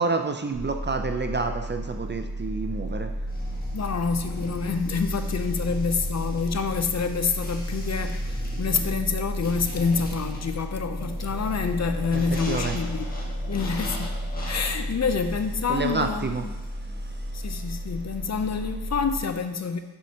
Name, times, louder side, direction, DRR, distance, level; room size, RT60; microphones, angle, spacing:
voice 1, 0.0-3.1 12.1-12.8 15.7-16.4, right 4 dB, 30° right, 6 dB, 0.5 m, -28 dB
sound 1, 0.5-19.2, equal, 60° right, 1.2 m, -32 dB
sound 2, 3.3-17.3, left 1 dB, 20° left, 1.7 m, -41 dB
voice 2, 3.7-13.1 13.5-14.2 14.4-16.5 17.3-19.8, left 5 dB, 45° left, 8 dB, 0.5 m, -27 dB
6.3 x 5.6 x 2.8 m, 1.2 s
cardioid pair, 55°, 40 cm